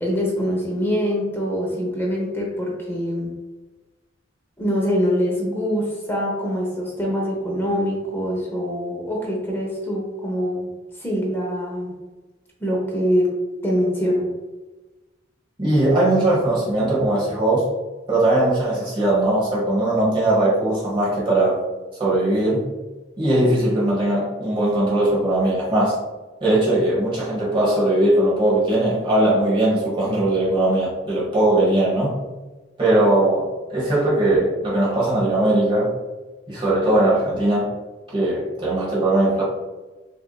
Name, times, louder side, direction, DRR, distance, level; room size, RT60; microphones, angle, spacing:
voice 1, 0.0-3.3 4.6-10.7 11.0-11.9 12.6-13.3 13.6-14.3, equal, 10° left, -2 dB, 0.8 m, -24 dB
voice 2, 15.6-17.7 18.1-21.6 22.0-22.7 23.2-26.0 26.4-32.2 32.8-36.0 36.5-37.7 38.1-39.4, right 1 dB, 25° right, -6 dB, 1.2 m, -19 dB
5.6 x 2.7 x 2.3 m, 1.2 s
head